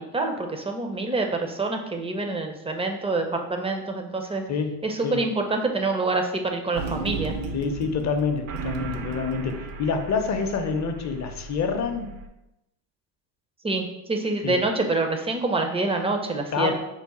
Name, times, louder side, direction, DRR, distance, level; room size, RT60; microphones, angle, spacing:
voice 1, 0.1-4.4 4.8-7.3 13.6-16.7, right 3 dB, 15° right, 4 dB, 0.4 m, -26 dB
voice 2, 4.5-5.2 7.5-12.2 14.4-14.6 16.5-16.7, left 5 dB, 35° left, 6 dB, 0.5 m, -27 dB
sound 1, 6.7-12.3, right 3 dB, 70° right, 0.6 m, -35 dB
4.7 x 2.1 x 4.1 m, 0.91 s
supercardioid pair, 85°, 49 cm